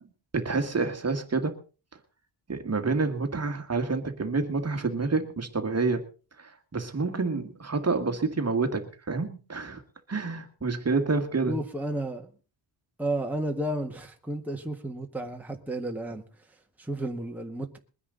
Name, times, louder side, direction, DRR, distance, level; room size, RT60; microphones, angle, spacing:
voice 1, 0.3-1.6 2.5-6.0 6.4-9.8 10.1-11.6, right 4 dB, 35° right, 6 dB, 1.8 m, -28 dB
voice 2, 11.5-12.3 13.0-16.2 16.8-17.8, right 1 dB, 5° right, 1 dB, 1.6 m, -32 dB
22.0 x 10.0 x 3.9 m, 0.35 s
wide cardioid pair, 130°, 45 cm